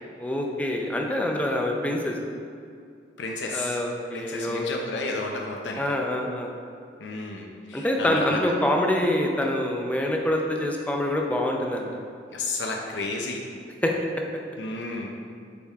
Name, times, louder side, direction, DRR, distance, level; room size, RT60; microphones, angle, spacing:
voice 1, 0.2-2.2 3.5-4.7 5.8-6.5 7.7-12.1 13.8-13.9, left 1 dB, 10° left, 1 dB, 0.5 m, -26 dB
voice 2, 3.2-3.8 4.1-5.8 7.0-8.4 12.3-13.4 14.6-15.1, left 3 dB, 80° left, 0 dB, 0.6 m, -32 dB
8.5 x 3.6 x 3.5 m, 2.3 s
head